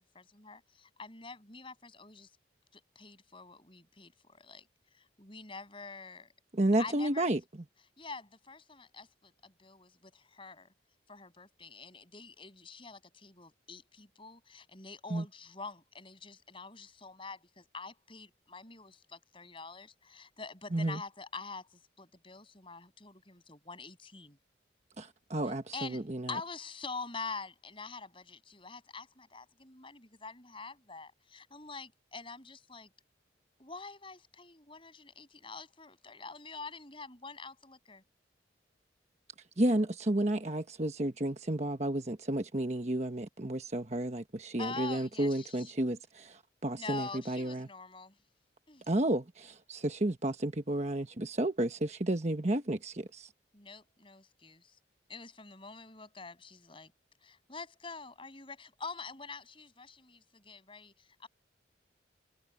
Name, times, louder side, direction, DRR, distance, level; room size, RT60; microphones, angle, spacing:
voice 1, 0.0-2.3 2.7-4.7 4.9-6.3 6.8-7.3 8.0-10.7 11.1-24.4 25.7-26.0 26.3-32.9 33.6-38.0 44.6-45.7 46.8-48.2 48.7-48.9 53.5-54.8 55.1-56.9 57.2-61.3, left 4 dB, 30° left, 7.6 m, -46 dB
voice 2, 6.5-7.4 15.1-15.2 20.7-21.0 25.0-26.4 39.6-47.7 48.9-53.3, right 1 dB, 35° right, 1.2 m, -32 dB
head